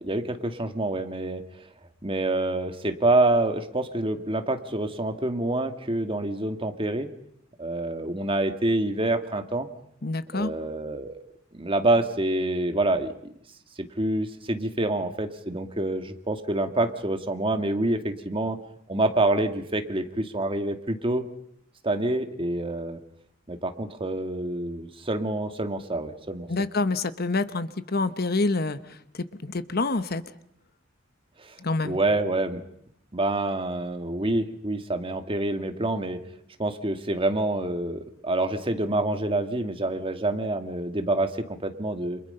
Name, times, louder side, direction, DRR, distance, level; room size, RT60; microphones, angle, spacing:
voice 1, 0.0-1.4 2.0-7.1 7.6-9.7 10.3-11.2 11.5-13.1 14.0-18.6 18.9-21.2 21.8-23.0 23.5-26.5 31.4-31.5 31.8-32.6 33.1-36.2 36.6-42.2, right 2 dB, 25° right, 7 dB, 2.0 m, -27 dB
voice 2, 10.0-10.5 26.5-30.2 31.6-32.0, left 3 dB, 50° left, 12 dB, 1.2 m, -27 dB
29.5 x 27.5 x 5.6 m, 0.71 s
head